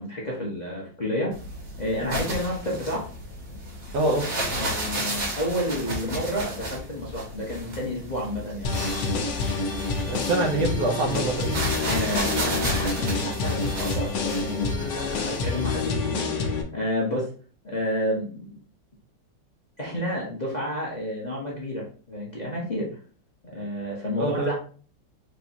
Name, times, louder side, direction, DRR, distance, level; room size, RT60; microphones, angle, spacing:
voice 1, 0.0-1.3 1.8-3.1 4.5-8.7 11.8-17.3 17.6-18.6 19.8-22.9 23.5-24.6, equal, 35° left, -5 dB, 0.8 m, -30 dB
sound 1, 1.3-15.9, right 1 dB, 50° right, 1.7 m, -33 dB
voice 2, 3.9-4.3 10.0-11.6 24.2-24.5, right 2 dB, 65° right, 2 dB, 1.2 m, -25 dB
sound 2, 8.6-16.6, left 4 dB, 75° left, 1.4 m, -28 dB
4.3 x 3.4 x 2.8 m, 0.41 s
omnidirectional pair, 1.9 m